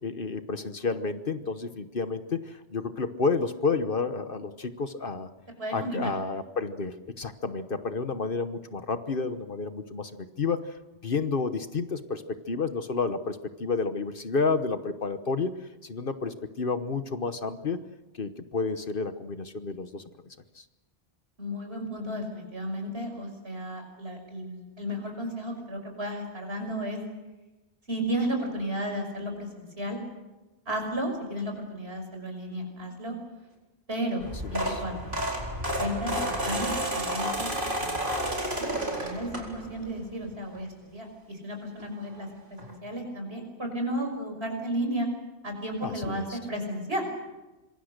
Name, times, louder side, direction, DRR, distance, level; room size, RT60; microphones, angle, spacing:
voice 1, 0.0-5.3 5.7-10.7 11.0-15.5 15.8-17.8 18.1-20.0 20.5-20.6 34.4-34.8 45.8-46.4, left 4 dB, 50° left, 10 dB, 1.2 m, -30 dB
voice 2, 5.6-6.1 21.4-27.0 27.9-30.0 30.7-33.1 33.9-34.2 34.5-35.1 35.8-37.5 37.8-38.0 38.6-42.3 42.8-45.1 45.4-47.1, equal, 60° right, 3 dB, 6.3 m, -33 dB
sound 1, 34.2-39.8 40.3-40.6 41.8-41.9 42.1-42.2 42.6-42.7, right 1 dB, 45° right, 4.6 m, -31 dB
26.0 x 23.0 x 6.6 m, 1.1 s
omnidirectional pair, 1.2 m